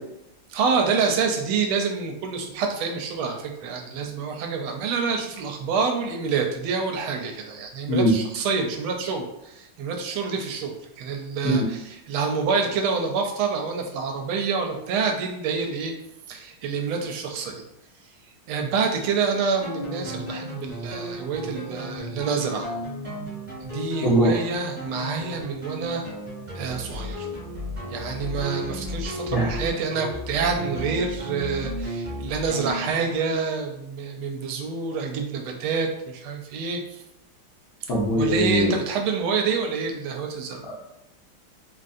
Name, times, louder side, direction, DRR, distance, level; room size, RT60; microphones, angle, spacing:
voice 1, 0.5-15.9 16.3-17.6 18.5-22.8 23.6-26.0 26.6-27.3 27.9-37.0 38.1-40.6, right 5 dB, 80° right, 3 dB, 1.4 m, -27 dB
sound 1, 19.6-33.3, left 1 dB, 15° right, 0.7 m, -34 dB
voice 2, 24.0-24.3 29.3-29.5 37.9-38.7, equal, 60° left, -6 dB, 1.1 m, -20 dB
3.8 x 2.6 x 2.4 m, 0.85 s
omnidirectional pair, 2.3 m